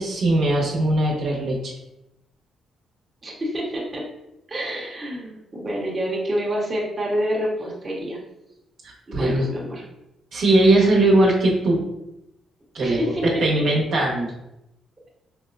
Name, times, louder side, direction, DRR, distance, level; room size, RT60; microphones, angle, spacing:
voice 1, 0.0-1.7 9.1-9.5 10.3-11.8 12.7-13.0 13.4-14.3, right 2 dB, 70° right, -3 dB, 1.0 m, -19 dB
voice 2, 3.2-4.0 4.5-8.2 9.1-9.8 12.8-13.3, equal, 30° right, -4 dB, 0.9 m, -27 dB
4.7 x 2.1 x 2.4 m, 0.88 s
cardioid pair, 90°, 0 cm